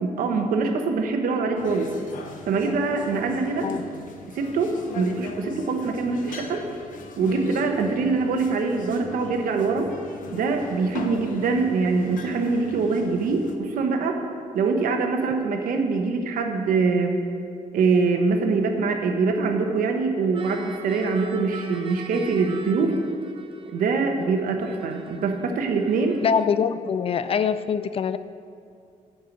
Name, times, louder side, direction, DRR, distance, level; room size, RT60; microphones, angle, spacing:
voice 1, 0.0-1.9 2.5-3.7 4.3-6.6 7.2-9.9 10.3-14.2 14.5-17.2 17.7-23.0 23.7-26.2, right 4 dB, 85° right, 4 dB, 1.1 m, -24 dB
sound 1, 1.6-13.6, left 4 dB, 70° left, 0.9 m, -39 dB
sound 2, 20.2-26.5, right 5 dB, 40° right, 1.0 m, -43 dB
voice 2, 26.2-28.2, left 7 dB, 45° left, 13 dB, 0.4 m, -24 dB
9.2 x 5.6 x 7.9 m, 2.3 s
cardioid pair, 130°, 14 cm